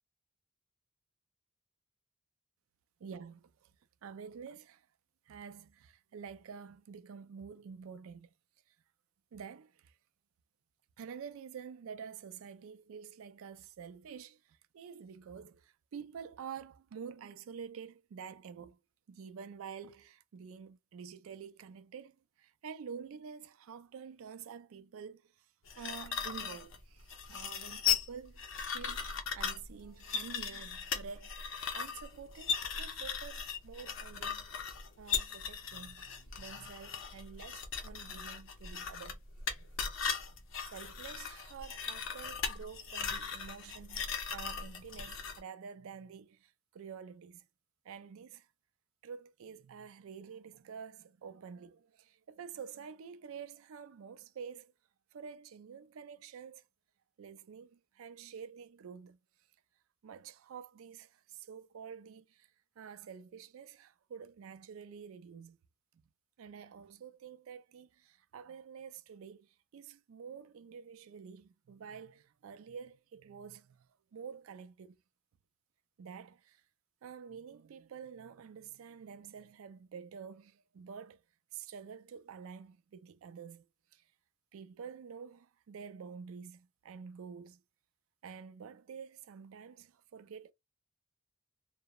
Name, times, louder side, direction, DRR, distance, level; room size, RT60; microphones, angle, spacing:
voice 1, 3.0-3.7 4.0-4.9 5.3-8.3 9.3-10.0 11.0-18.8 19.1-25.5 25.8-28.4 28.7-34.5 35.0-39.2 39.5-39.8 40.3-40.4 40.7-47.4 47.8-48.5 49.0-54.7 55.1-56.6 57.2-59.2 60.0-62.5 62.8-65.6 66.4-75.0 76.0-76.6 77.0-81.2 81.5-83.7 83.9-84.0 84.5-87.6 88.2-90.5, right 6 dB, 70° right, 0.3 m, -49 dB
sound 1, 25.7-45.4, left 6 dB, 65° left, 0.5 m, -38 dB
2.8 x 2.0 x 2.2 m
head